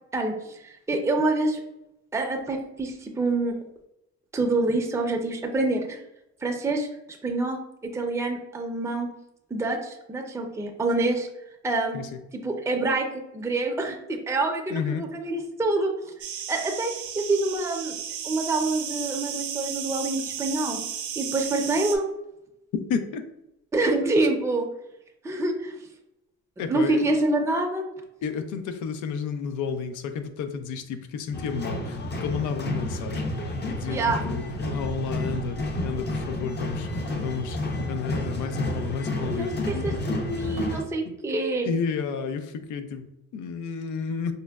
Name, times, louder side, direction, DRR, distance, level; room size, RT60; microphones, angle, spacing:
voice 1, 0.1-1.6 2.1-3.5 4.3-6.0 6.4-6.9 7.2-7.6 7.9-9.1 9.5-11.3 11.6-12.0 12.4-13.1 13.3-15.9 16.5-18.0 18.2-20.8 21.2-22.1 23.7-24.7 25.2-25.8 26.6-27.8 33.9-34.2 39.3-41.7, right 2 dB, 10° right, 2 dB, 0.5 m, -26 dB
voice 2, 14.7-15.0 22.9-23.2 26.6-27.0 28.2-40.0 41.1-41.2 41.6-44.3, left 6 dB, 80° left, 9 dB, 0.5 m, -31 dB
sound 1, 16.2-22.0, right 8 dB, 75° right, 0.5 m, -34 dB
sound 2, 31.3-40.8, left 1 dB, 35° left, 0.6 m, -30 dB
5.1 x 2.1 x 2.3 m, 0.84 s
cardioid pair, 90°, 30 cm